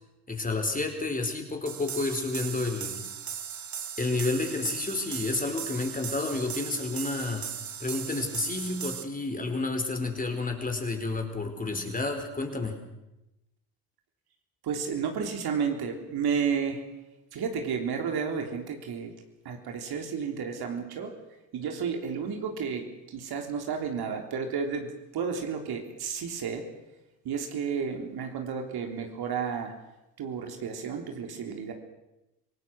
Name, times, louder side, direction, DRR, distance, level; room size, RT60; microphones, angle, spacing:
voice 1, 0.3-3.0 4.0-7.5 7.8-12.8, left 3 dB, 20° left, 5 dB, 4.6 m, -30 dB
sound 1, 1.7-9.0, right 8 dB, 40° right, 2.0 m, -38 dB
voice 2, 14.6-16.8 17.3-19.1 19.5-21.1 21.5-26.6 27.2-29.7 30.2-31.7, right 6 dB, 55° right, 4 dB, 3.7 m, -32 dB
26.5 x 18.5 x 6.4 m, 0.95 s
hypercardioid pair, 70°, 46 cm